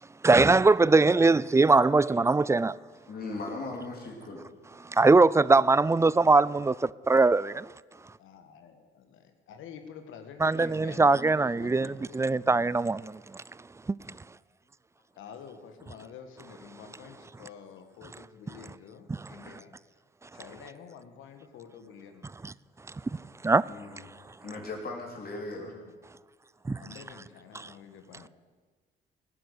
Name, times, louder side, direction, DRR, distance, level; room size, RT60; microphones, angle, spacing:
voice 1, 0.2-2.8 4.9-7.7 10.4-13.4 13.9-14.0 22.4-22.5 23.4-23.6 26.7-26.8, right 3 dB, 15° right, 0.4 m, -22 dB
voice 2, 0.8-1.4 8.2-12.8 15.1-19.8 20.3-22.3 25.3-25.9 26.8-28.3, left 7 dB, 85° left, 1.6 m, -49 dB
voice 3, 3.1-4.5 23.7-24.0 24.4-25.7, left 3 dB, 50° left, 3.3 m, -38 dB
17.5 x 10.0 x 8.2 m
cardioid pair, 90°, 20 cm